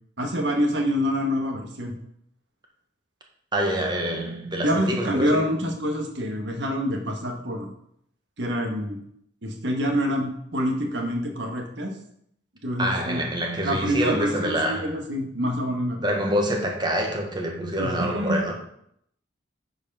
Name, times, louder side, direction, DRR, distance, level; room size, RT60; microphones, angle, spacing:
voice 1, 0.2-1.9 4.6-7.7 8.4-9.0 9.4-11.9 12.6-13.2 13.6-16.2 17.8-18.4, equal, 65° right, 1.6 m, -26 dB
voice 2, 3.5-5.5 12.8-14.9 16.0-18.5, equal, 25° right, 1.4 m, -26 dB
8.1 x 4.9 x 5.5 m
head